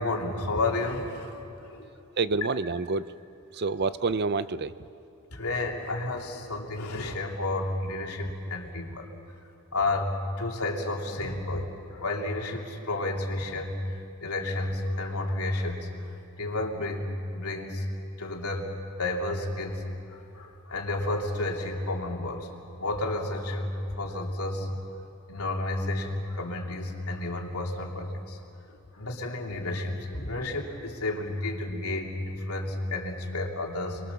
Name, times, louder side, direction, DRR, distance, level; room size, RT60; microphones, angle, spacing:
voice 1, 0.0-1.9 5.3-9.0 9.7-10.1 10.4-16.1 16.4-17.8 18.2-18.7 19.0-19.8 20.1-22.5 22.8-24.7 25.3-28.4 28.9-34.0, left 2 dB, 80° left, 0 dB, 3.1 m, -31 dB
voice 2, 2.2-3.1 3.5-4.7, right 4 dB, 50° right, 14 dB, 0.6 m, -27 dB
28.5 x 22.0 x 7.0 m, 2.7 s
head